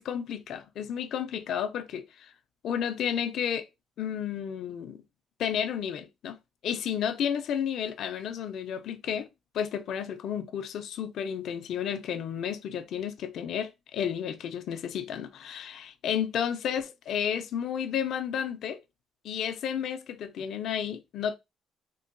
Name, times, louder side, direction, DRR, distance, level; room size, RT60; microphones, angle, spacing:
voice 1, 0.0-2.3 2.6-3.7 4.0-5.0 5.4-6.4 6.6-9.3 9.5-18.8 19.2-21.4, left 8 dB, 65° left, 0.5 m, -32 dB
3.7 x 2.2 x 2.5 m
cardioid pair, 125°, 0 cm